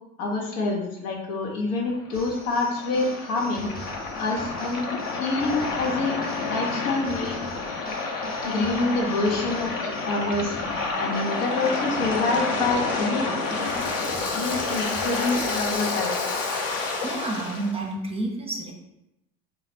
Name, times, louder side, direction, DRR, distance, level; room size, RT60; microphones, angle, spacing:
voice 1, 0.2-3.7 4.2-6.2 6.5-7.5 8.4-10.5 11.0-13.7 14.3-16.2, left 2 dB, 70° left, -1 dB, 1.0 m, -27 dB
Waves surf, 1.9-17.7, left 3 dB, 45° left, 0.9 m, -29 dB
sound 1, 2.1-16.2, equal, 20° left, 1.0 m, -42 dB
voice 2, 17.0-18.7, right 2 dB, 15° right, -1 dB, 0.7 m, -30 dB
4.1 x 2.1 x 4.1 m, 0.89 s
hypercardioid pair, 80°, 46 cm